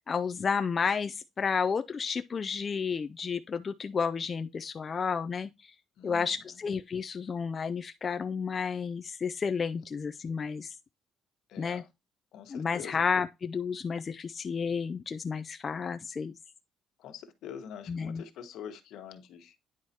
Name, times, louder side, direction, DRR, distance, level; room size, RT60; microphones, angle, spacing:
voice 1, 0.1-5.7 6.0-10.7 11.6-11.8 12.5-16.3 17.9-18.2, left 6 dB, 30° left, 0.3 m, -31 dB
voice 2, 6.0-6.3 11.5-11.9 12.3-13.0 17.0-19.5, left 8 dB, 70° left, 1.2 m, -45 dB
9.6 x 4.7 x 2.8 m
cardioid pair, 160°, 0 cm